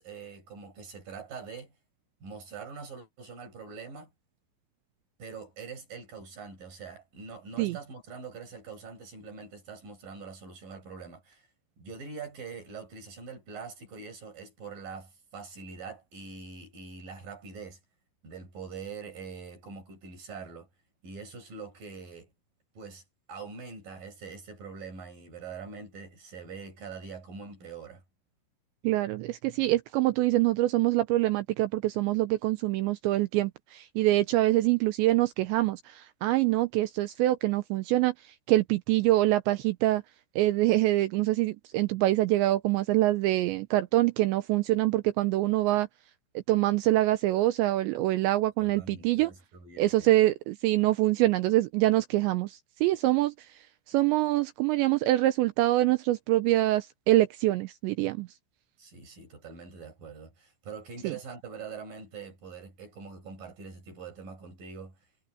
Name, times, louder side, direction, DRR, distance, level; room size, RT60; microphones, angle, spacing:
voice 1, 0.0-1.7 2.2-4.1 5.2-11.5 11.8-17.8 18.2-20.7 21.0-22.3 22.7-23.0 23.3-28.0 48.6-50.2 58.8-65.0, right 5 dB, 45° right, 8.3 m, -43 dB
voice 2, 28.8-38.1 38.5-40.0 40.4-45.9 46.5-49.3 49.8-53.3 53.9-58.3 61.0-61.1, right 16 dB, 85° right, 2.6 m, -25 dB
omnidirectional pair, 5.8 m